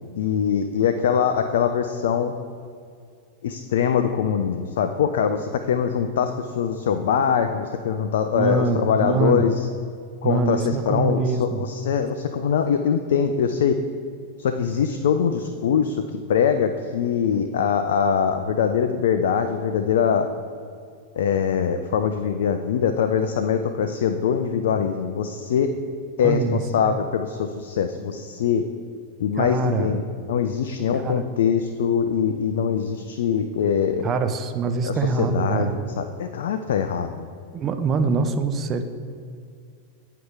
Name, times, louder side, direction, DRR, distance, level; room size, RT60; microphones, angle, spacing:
voice 1, 0.2-2.3 3.4-9.7 10.2-13.8 14.4-20.3 21.2-25.7 26.2-28.7 29.2-30.0 30.3-34.0 34.8-37.3, left 7 dB, 60° left, 8 dB, 0.3 m, -23 dB
voice 2, 8.3-9.5 10.2-11.7 26.2-26.9 29.4-29.9 30.9-31.3 34.0-35.9 37.5-38.8, right 4 dB, 25° right, 8 dB, 0.4 m, -24 dB
9.3 x 4.6 x 3.7 m, 2.2 s
figure-of-eight pair, 90°, 0 cm